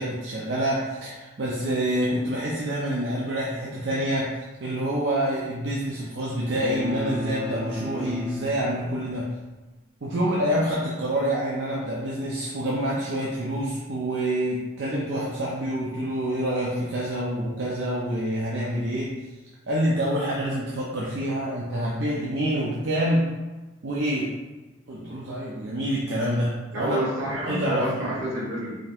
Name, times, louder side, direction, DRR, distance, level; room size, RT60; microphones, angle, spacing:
voice 1, 0.0-9.3 10.0-19.1 19.7-23.3 23.8-24.3 24.9-27.0 27.3-27.9, right 1 dB, 60° right, -6 dB, 0.6 m, -27 dB
sound 1, 6.5-9.1, equal, 20° right, 1.0 m, -35 dB
voice 2, 26.7-28.7, right 1 dB, 80° right, -5 dB, 1.4 m, -28 dB
5.0 x 2.8 x 2.4 m, 1.1 s
head